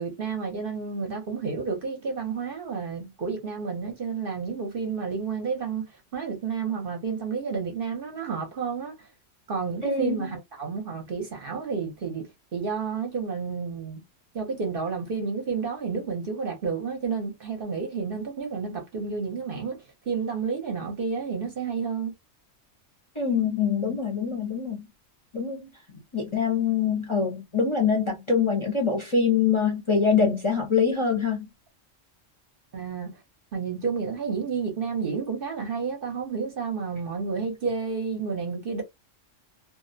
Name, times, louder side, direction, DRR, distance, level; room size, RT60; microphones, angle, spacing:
voice 1, 0.0-5.8 6.1-8.9 9.5-12.3 12.5-14.0 14.3-22.1 32.7-33.1 33.5-38.8, right 5 dB, 50° right, 0.8 m, -30 dB
voice 2, 9.8-10.3 23.2-24.9 25.3-25.7 26.1-31.5, left 5 dB, 30° left, 0.6 m, -24 dB
2.4 x 2.0 x 2.5 m
omnidirectional pair, 1.3 m